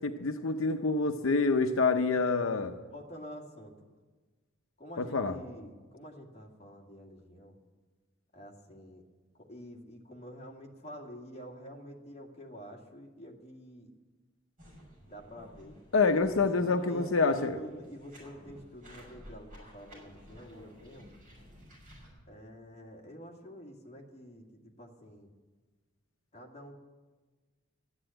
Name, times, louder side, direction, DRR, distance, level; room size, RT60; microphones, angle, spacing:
voice 1, 0.0-2.7 5.0-5.3 15.9-17.6, left 4 dB, 80° left, 6 dB, 0.7 m, -27 dB
voice 2, 2.9-3.7 4.8-7.6 8.3-9.0 9.3-13.9 15.1-15.8 16.3-21.1 22.3-25.3 26.3-26.8, equal, 30° left, 0 dB, 2.0 m, -48 dB
sound 1, 14.6-22.1, equal, 40° right, 6.1 m, -53 dB
14.0 x 9.9 x 8.9 m, 1.3 s
head